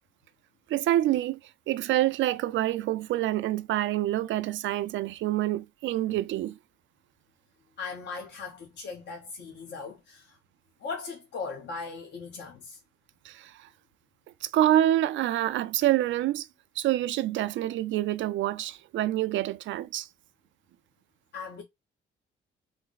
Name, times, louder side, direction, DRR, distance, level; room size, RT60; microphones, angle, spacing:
voice 1, 0.7-1.4 1.7-6.6 13.2-13.7 14.4-16.5 16.8-20.1, right 13 dB, 70° right, 0.4 m, -27 dB
voice 2, 7.8-10.4 10.8-12.8 21.3-21.6, left 4 dB, 60° left, 1.0 m, -38 dB
3.2 x 2.1 x 3.9 m
cardioid pair, 90°, 20 cm